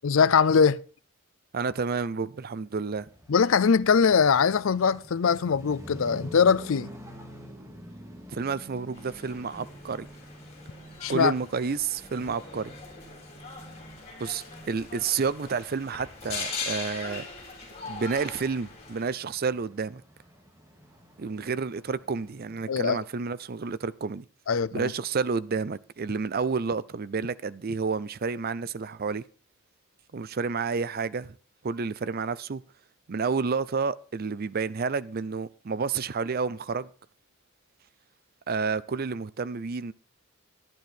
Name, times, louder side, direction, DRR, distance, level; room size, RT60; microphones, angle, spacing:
voice 1, 0.0-0.8 3.3-6.9 11.0-11.3 22.7-23.0 24.5-24.9, left 6 dB, 70° left, 0.5 m, -22 dB
voice 2, 1.5-3.1 8.3-10.1 11.1-12.7 14.2-17.2 17.9-20.0 21.2-24.2 24.7-29.2 30.1-31.3 31.6-32.6 33.1-36.9 38.5-39.9, right 5 dB, 45° right, 0.5 m, -30 dB
sound 1, 2.9-22.6, equal, 15° right, 2.2 m, -48 dB
sound 2, 8.9-19.0, left 4 dB, 30° left, 3.8 m, -41 dB
11.5 x 10.5 x 4.4 m
head